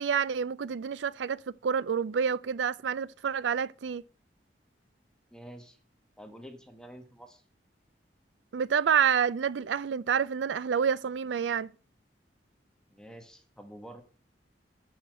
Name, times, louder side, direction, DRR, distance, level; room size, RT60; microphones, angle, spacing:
voice 1, 0.0-4.0 8.5-11.7, right 7 dB, 85° right, 0.4 m, -28 dB
voice 2, 5.3-5.8 6.2-7.4 12.9-14.0, equal, 5° left, 1.1 m, -48 dB
9.5 x 5.7 x 6.2 m
head